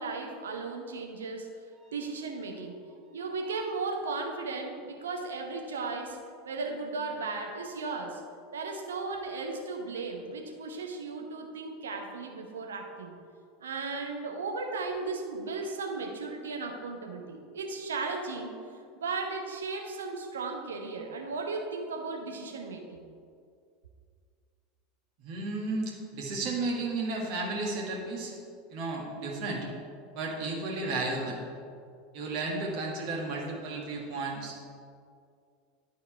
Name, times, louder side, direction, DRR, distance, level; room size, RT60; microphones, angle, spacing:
voice 1, 0.0-1.5 1.9-2.8 3.1-6.2 6.4-8.2 8.5-13.1 13.6-18.6 19.0-23.0, right 3 dB, 70° right, 3 dB, 0.9 m, -36 dB
voice 2, 25.2-28.3 28.7-29.7 30.1-31.4 32.1-34.5, right 3 dB, 50° right, -2 dB, 1.6 m, -33 dB
11.0 x 4.1 x 4.5 m, 2.3 s
figure-of-eight pair, 80°, 0 cm